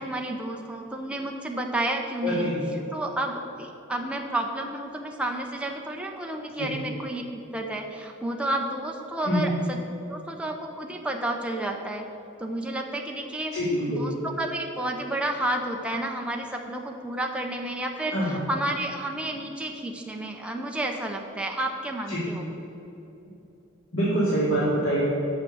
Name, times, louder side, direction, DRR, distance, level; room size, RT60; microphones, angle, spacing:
voice 1, 0.0-2.6 2.9-9.8 10.1-12.1 12.4-13.5 14.0-22.5, right 1 dB, 5° right, 1 dB, 0.7 m, -31 dB
voice 2, 2.2-2.6 6.6-6.7 9.2-9.4 13.5-14.0 18.1-18.3 22.1-22.2 23.9-25.0, equal, 85° left, -8 dB, 2.4 m, -25 dB
8.9 x 6.3 x 7.0 m, 3.0 s
head